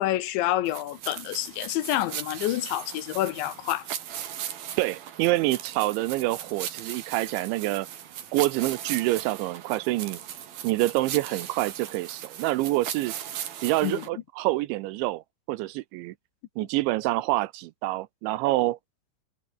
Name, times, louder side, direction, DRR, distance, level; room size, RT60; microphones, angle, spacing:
voice 1, 0.0-3.9 13.8-14.0, left 14 dB, 75° left, 3.4 m, -28 dB
sound 1, 0.7-14.1, right 10 dB, 55° right, 3.7 m, -38 dB
voice 2, 4.8-7.9 8.3-10.2 10.6-13.1 13.6-15.2 15.5-16.1 16.6-18.8, right 18 dB, 80° right, 3.0 m, -26 dB
omnidirectional pair, 5.5 m